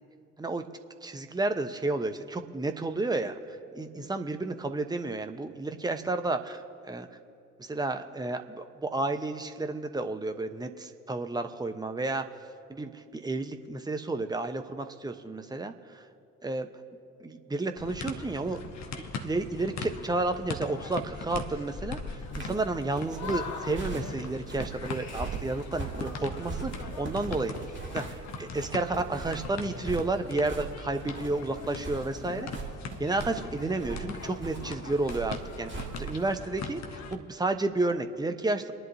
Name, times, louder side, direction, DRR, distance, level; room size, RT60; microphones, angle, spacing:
voice 1, 1.0-6.6 6.9-7.1 7.6-12.2 12.7-16.0 16.4-16.7 17.2-18.6 19.2-27.5 27.9-32.5 33.0-38.7, right 2 dB, 10° right, 7 dB, 1.0 m, -31 dB
sound 1, 17.8-37.2, left 4 dB, 45° left, 1.2 m, -40 dB
sound 2, 22.2-36.3, right 5 dB, 30° right, 2.7 m, -40 dB
29.5 x 11.0 x 2.8 m, 2.7 s
figure-of-eight pair, 45°, 39 cm